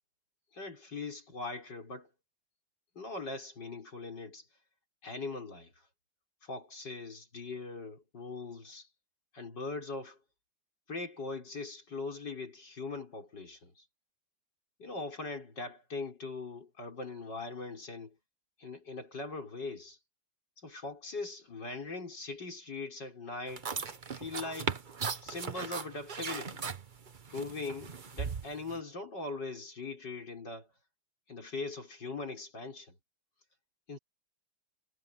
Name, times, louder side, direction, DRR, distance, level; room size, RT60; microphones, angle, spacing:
voice 1, 0.5-2.1 2.9-4.5 5.0-5.7 6.4-8.9 9.3-10.2 10.9-13.8 14.8-18.2 18.6-20.0 20.6-23.7 24.1-24.7 25.2-26.6 27.3-30.7 31.3-32.9 33.9-34.0, left 3 dB, 75° left, 6.5 m, -41 dB
sound 1, 23.5-28.8, right 5 dB, 35° right, 1.0 m, -38 dB
omnidirectional pair, 1.9 m